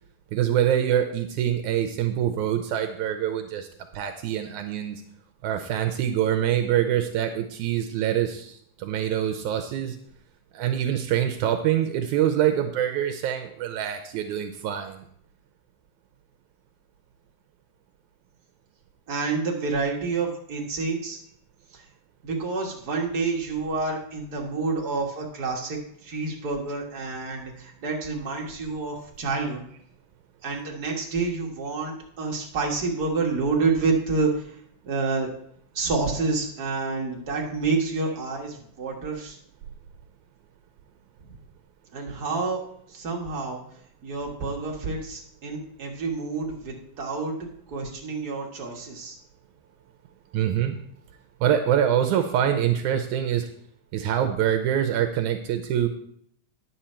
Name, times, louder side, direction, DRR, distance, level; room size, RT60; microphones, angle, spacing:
voice 1, 0.3-3.7 3.9-5.0 5.4-10.0 10.5-15.0 50.3-50.8 51.4-53.5 53.9-55.9, right 10 dB, 80° right, 6 dB, 2.0 m, -25 dB
voice 2, 19.1-21.2 22.2-29.6 30.4-34.5 34.8-35.3 35.7-39.4 41.9-42.6 42.9-43.6 44.0-47.4 47.7-49.2, right 4 dB, 45° right, -1 dB, 1.4 m, -28 dB
10.0 x 7.5 x 4.4 m, 0.66 s
omnidirectional pair, 3.6 m